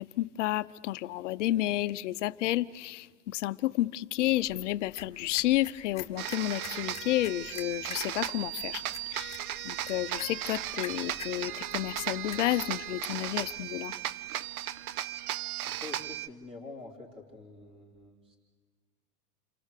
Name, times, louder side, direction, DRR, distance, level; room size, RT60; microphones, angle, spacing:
voice 1, 0.0-8.8 9.1-13.9, left 15 dB, 50° left, 0.7 m, -31 dB
sound 1, 4.2-13.7, left 8 dB, 15° left, 1.9 m, -49 dB
sound 2, 6.2-16.3, right 12 dB, 65° right, 0.8 m, -36 dB
voice 2, 15.6-18.4, left 3 dB, 10° right, 2.9 m, -46 dB
29.5 x 24.0 x 6.6 m
supercardioid pair, 155°, 48 cm